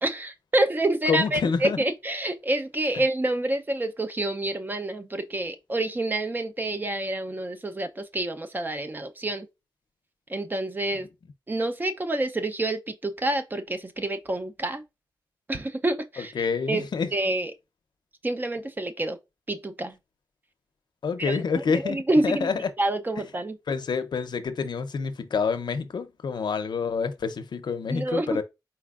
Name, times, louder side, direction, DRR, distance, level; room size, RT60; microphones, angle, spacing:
voice 1, 0.0-9.5 10.3-11.1 11.5-14.8 15.5-17.5 18.2-19.2 19.5-20.0 21.2-22.5 22.8-23.6 27.9-28.4, right 1 dB, 25° right, 0.5 m, -28 dB
voice 2, 1.1-1.8 16.4-17.1 21.0-22.0 22.2-22.5 23.7-28.4, left 5 dB, 85° left, 0.5 m, -27 dB
4.3 x 4.2 x 2.3 m
wide cardioid pair, 135°, 7 cm